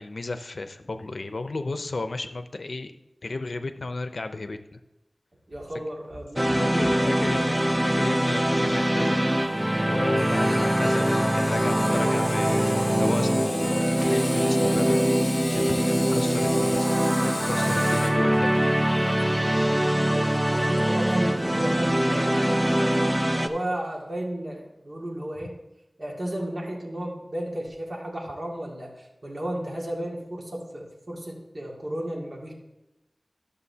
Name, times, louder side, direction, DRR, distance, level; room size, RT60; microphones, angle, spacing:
voice 1, 0.0-2.9 3.2-4.8 6.5-7.6 7.8-9.2 9.8-18.5, left 3 dB, 75° left, 9 dB, 0.6 m, -34 dB
voice 2, 5.5-6.9 7.2-7.4 17.4-18.4 20.0-25.5 26.0-32.5, right 1 dB, 55° right, -2 dB, 2.2 m, -34 dB
sound 1, 6.4-23.5, equal, 20° right, 0.6 m, -23 dB
Sawing, 7.1-22.5, left 1 dB, 25° left, 1.2 m, -37 dB
12.5 x 6.9 x 2.8 m, 0.97 s
wide cardioid pair, 60°, 0 cm